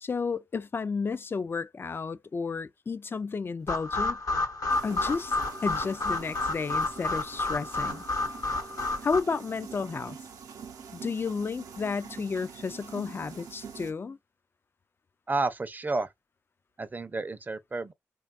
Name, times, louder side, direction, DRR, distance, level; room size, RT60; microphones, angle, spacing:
voice 1, 0.0-4.2 4.8-5.4 5.6-8.1 9.0-10.2 10.9-14.2, left 5 dB, 40° left, 0.3 m, -32 dB
sound 1, 3.7-9.2, left 2 dB, 70° left, 0.9 m, -30 dB
sound 2, 4.7-13.9, right 6 dB, 85° right, 0.6 m, -45 dB
voice 2, 15.3-16.1 16.8-17.9, right 3 dB, 30° right, 0.5 m, -31 dB
3.3 x 2.3 x 2.4 m
cardioid pair, 55°, 6 cm